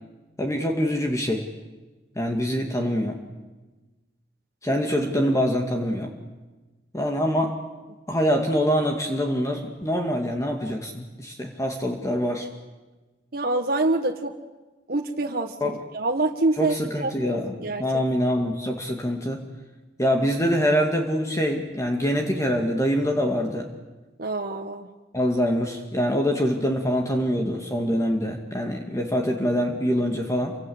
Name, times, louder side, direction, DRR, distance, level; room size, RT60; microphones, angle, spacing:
voice 1, 0.4-1.5 2.2-3.2 4.6-6.1 6.9-7.6 8.1-12.5 15.6-15.8 16.6-19.4 20.0-23.7 25.1-30.6, equal, 15° left, 2 dB, 2.2 m, -24 dB
voice 2, 13.3-14.3 14.9-17.8 24.2-24.9, right 2 dB, 55° right, 2 dB, 1.5 m, -26 dB
28.5 x 25.0 x 8.0 m, 1.2 s
head